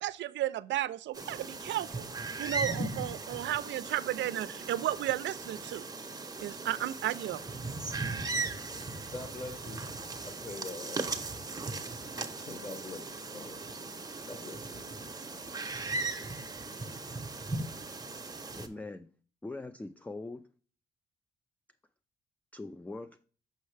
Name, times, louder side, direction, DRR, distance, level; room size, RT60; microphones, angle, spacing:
voice 1, 0.0-2.1 2.4-5.8 6.4-7.4, right 13 dB, 65° right, 0.4 m, -33 dB
sound 1, 1.1-18.7, right 3 dB, 20° right, 0.8 m, -38 dB
voice 2, 9.1-9.9 10.4-11.1 12.1-13.6 14.3-14.9, left 3 dB, 25° left, 1.2 m, -44 dB
voice 3, 18.5-19.1 19.4-20.5 22.5-23.2, left 2 dB, 5° left, 0.3 m, -42 dB
6.4 x 5.4 x 3.3 m
cardioid pair, 90°, 20 cm